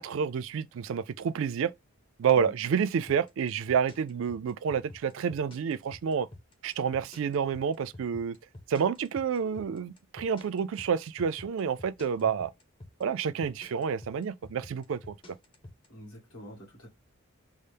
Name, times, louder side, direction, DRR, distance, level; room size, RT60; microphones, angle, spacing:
voice 1, 0.0-1.7 2.2-6.3 6.6-8.4 8.7-12.5 13.0-15.1, right 7 dB, 65° right, 0.3 m, -29 dB
sound 1, 3.1-15.9, left 1 dB, 25° left, 0.5 m, -48 dB
voice 2, 15.9-16.9, equal, 80° left, 1.8 m, -46 dB
5.4 x 2.0 x 3.3 m
head